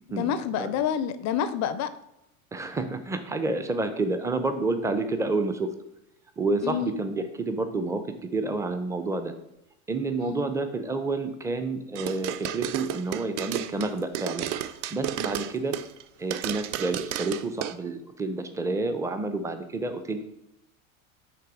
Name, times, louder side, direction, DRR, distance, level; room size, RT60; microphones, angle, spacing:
voice 1, 0.1-1.9 6.6-7.0 10.2-10.5, left 9 dB, 45° left, 12 dB, 0.5 m, -28 dB
voice 2, 2.5-5.7 6.4-9.3 9.9-14.5 14.9-15.8 16.2-20.2, right 3 dB, 10° right, 8 dB, 0.6 m, -29 dB
sound 1, 12.0-16.0 16.3-17.7, right 11 dB, 65° right, 0.5 m, -32 dB
5.8 x 3.6 x 4.8 m, 0.84 s
hypercardioid pair, 85°, 40 cm